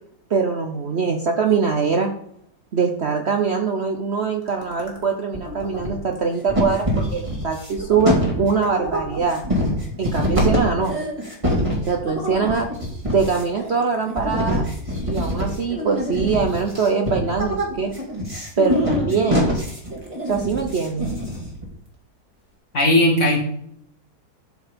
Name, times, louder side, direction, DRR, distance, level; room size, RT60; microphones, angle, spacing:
voice 1, 0.3-2.1 2.7-9.4 10.0-11.0 11.9-12.7 13.1-14.6 15.0-17.9 18.6-19.6 20.3-21.1, right 5 dB, 50° right, 4 dB, 0.9 m, -22 dB
sound 1, 4.5-5.0 5.3-6.2 6.5-21.7, equal, 20° right, 2.3 m, -24 dB
voice 2, 22.7-23.4, left 1 dB, 45° left, 0 dB, 2.6 m, -16 dB
12.0 x 4.7 x 5.2 m, 0.70 s
omnidirectional pair, 1.8 m